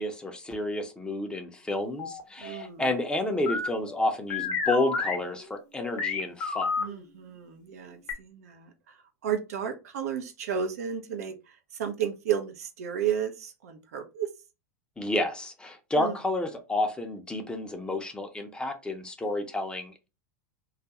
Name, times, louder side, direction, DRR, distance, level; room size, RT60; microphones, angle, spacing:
voice 1, 0.0-6.7 15.0-20.1, left 2 dB, 10° left, 0.5 m, -30 dB
sound 1, 2.0-2.6 3.4-6.8 8.1-8.2, left 4 dB, 45° left, 0.8 m, -31 dB
voice 2, 2.4-2.9 6.8-9.0 9.2-14.3 16.0-16.1, right 8 dB, 70° right, 0.5 m, -33 dB
2.3 x 2.2 x 2.8 m
hypercardioid pair, 95°, 8 cm